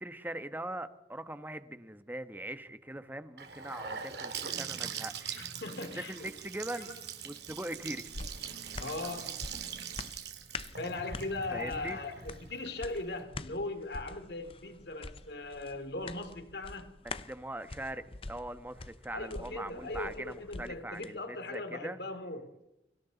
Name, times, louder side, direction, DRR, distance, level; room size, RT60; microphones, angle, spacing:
voice 1, 0.0-5.4 5.9-6.9 7.2-8.1 11.5-12.0 17.2-22.0, right 1 dB, 10° right, 1.3 m, -41 dB
Gurgling / Sink (filling or washing) / Bathtub (filling or washing), 3.4-13.2, right 7 dB, 65° right, 2.6 m, -42 dB
voice 2, 5.4-6.3 6.8-6.9 8.8-9.4 10.8-16.9 19.1-22.6, left 2 dB, 65° left, 2.8 m, -39 dB
sound 1, 7.5-21.1 21.5-21.6, left 3 dB, 30° left, 0.7 m, -46 dB
30.0 x 24.0 x 4.1 m
head